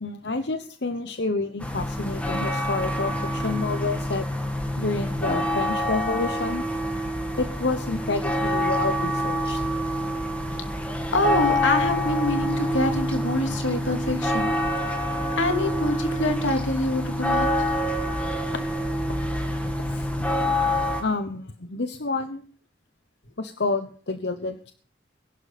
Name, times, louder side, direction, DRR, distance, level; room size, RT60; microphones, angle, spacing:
voice 1, 0.0-4.3 4.8-6.6 7.4-9.6 18.5-18.6 19.9-20.1 21.0-22.4 23.4-24.7, left 3 dB, 65° left, 8 dB, 1.0 m, -29 dB
sound 1, 1.6-21.0, equal, 5° left, 2.1 m, -26 dB
voice 2, 11.1-14.5 15.4-17.5, left 2 dB, 85° left, 5 dB, 2.7 m, -25 dB
21.5 x 11.5 x 4.3 m, 0.43 s
head